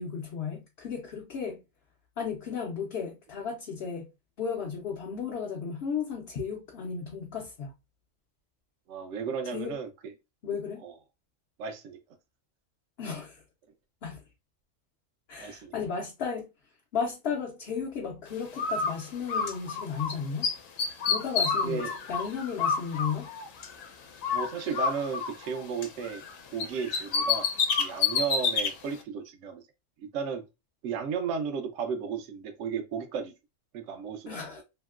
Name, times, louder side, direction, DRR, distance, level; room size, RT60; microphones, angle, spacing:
voice 1, 0.0-1.6 2.2-4.1 4.4-7.7 9.5-9.8 10.4-10.8 13.0-13.4 14.0-14.2 15.3-16.5 16.9-20.5 21.1-23.3 34.3-34.6, left 6 dB, 60° left, 0.8 m, -34 dB
voice 2, 8.9-9.9 10.8-10.9 11.6-12.0 15.4-15.7 21.6-21.9 24.3-26.2 26.5-27.5 27.8-29.6 30.0-30.4 30.8-33.3 33.7-34.4, right 6 dB, 70° right, 0.9 m, -34 dB
Bird, 18.6-20.1 20.4-23.9 24.2-26.3 26.6-28.7, left 5 dB, 85° left, 1.0 m, -29 dB
2.9 x 2.7 x 2.3 m
omnidirectional pair, 1.3 m